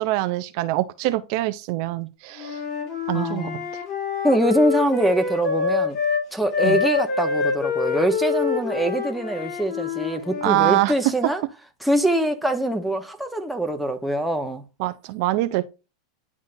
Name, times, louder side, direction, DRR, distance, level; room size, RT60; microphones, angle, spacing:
voice 1, 0.0-2.6 3.1-3.8 6.6-6.8 10.4-10.9 14.8-15.7, right 17 dB, 55° right, 0.6 m, -24 dB
Wind instrument woodwind instrument, 2.3-6.2 6.5-10.8, left 6 dB, 40° left, 3.5 m, -26 dB
voice 2, 3.1-3.7 4.2-6.0 6.3-11.4 11.8-14.6, right 1 dB, ahead, 1.1 m, -23 dB
10.5 x 3.7 x 2.6 m
supercardioid pair, 135°, 3 cm